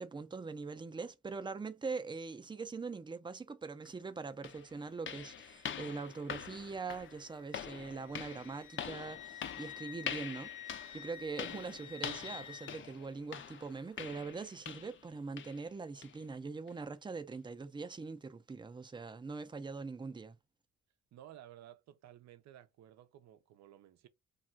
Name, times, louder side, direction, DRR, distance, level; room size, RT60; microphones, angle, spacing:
voice 1, 0.0-20.4, right 4 dB, 15° right, 0.5 m, -42 dB
sound 1, 3.8-3.9 4.4-15.1 15.4-15.6 16.0-16.2 16.7-16.8 17.3-17.4, left 8 dB, 40° left, 0.5 m, -45 dB
Wind instrument woodwind instrument, 7.0-12.8, left 10 dB, 90° left, 0.6 m, -50 dB
voice 2, 21.1-24.1, right 12 dB, 60° right, 0.6 m, -55 dB
2.4 x 2.3 x 3.9 m
cardioid pair, 90°, 30 cm